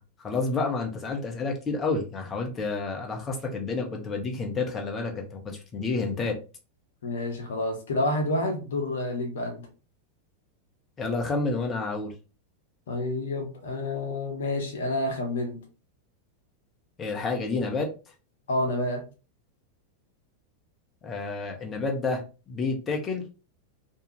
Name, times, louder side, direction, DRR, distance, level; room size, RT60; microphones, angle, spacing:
voice 1, 0.2-6.4 11.0-12.1 17.0-17.9 21.0-23.2, left 3 dB, 20° left, 1 dB, 0.7 m, -29 dB
voice 2, 7.0-9.7 12.9-15.6 18.5-19.0, left 2 dB, 60° left, 4 dB, 0.8 m, -29 dB
2.6 x 2.3 x 2.9 m, 0.32 s
figure-of-eight pair, 90°, 0 cm